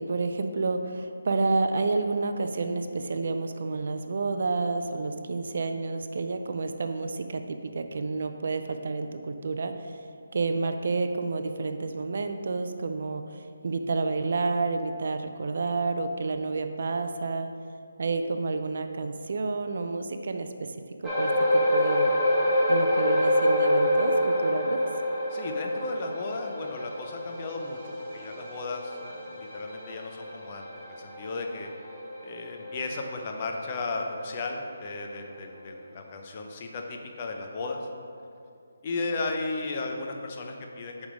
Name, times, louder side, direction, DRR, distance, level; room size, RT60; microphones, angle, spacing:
voice 1, 0.0-9.9 10.3-17.5 18.0-20.7 21.0-21.3 21.7-22.1 22.7-24.8, right 3 dB, 55° right, 7 dB, 0.4 m, -29 dB
sound 1, 21.0-33.7 34.1-34.3 34.8-34.9, left 1 dB, 5° right, 0.9 m, -27 dB
voice 2, 25.3-31.7 32.2-37.9 38.8-41.1, left 3 dB, 30° left, 2 dB, 0.6 m, -35 dB
5.2 x 4.9 x 5.0 m, 2.6 s
hypercardioid pair, 170°, 0 cm